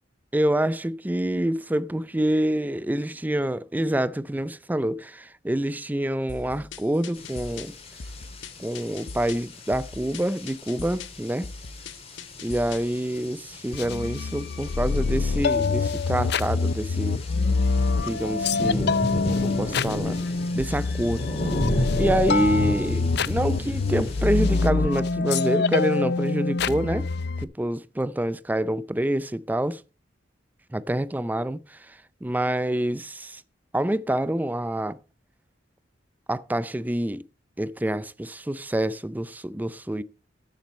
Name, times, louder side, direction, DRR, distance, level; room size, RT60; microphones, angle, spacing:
voice 1, 0.3-7.7 8.6-11.5 12.4-17.2 18.0-19.0 19.3-20.2 20.5-21.3 22.0-27.1 27.6-29.8 30.7-33.4 33.7-35.0 36.3-37.2 37.6-40.0, right 1 dB, 10° right, 0.4 m, -27 dB
sound 1, 6.3-13.0, left 4 dB, 80° left, 0.8 m, -41 dB
sound 2, 7.1-24.7, equal, 35° left, 2.3 m, -34 dB
sound 3, 13.7-27.4, left 4 dB, 60° left, 0.5 m, -25 dB
12.5 x 7.4 x 4.3 m
head